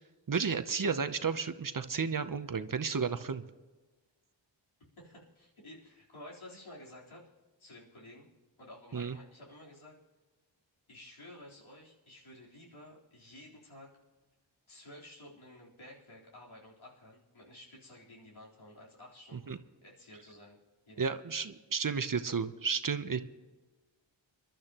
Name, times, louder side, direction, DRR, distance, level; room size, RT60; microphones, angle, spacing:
voice 1, 0.3-3.4 8.9-9.2 19.5-19.6 21.0-23.2, right 5 dB, 45° right, 10 dB, 0.8 m, -32 dB
voice 2, 5.0-7.2 7.6-8.3 8.6-9.9 10.9-13.9 14.7-20.6 20.9-21.2, left 1 dB, 85° left, -5 dB, 3.9 m, -52 dB
27.0 x 12.0 x 3.0 m, 1.2 s
wide cardioid pair, 60°, 47 cm